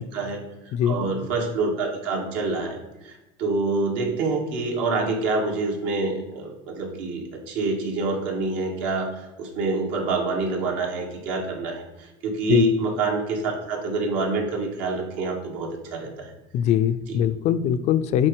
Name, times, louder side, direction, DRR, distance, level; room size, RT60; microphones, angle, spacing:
voice 1, 0.8-2.8 3.0-16.3 17.1-17.2, right 3 dB, 70° right, 1 dB, 1.9 m, -26 dB
voice 2, 16.5-18.3, left 10 dB, 45° left, 12 dB, 0.4 m, -21 dB
7.5 x 3.9 x 4.8 m, 1.0 s
supercardioid pair, 135°, 17 cm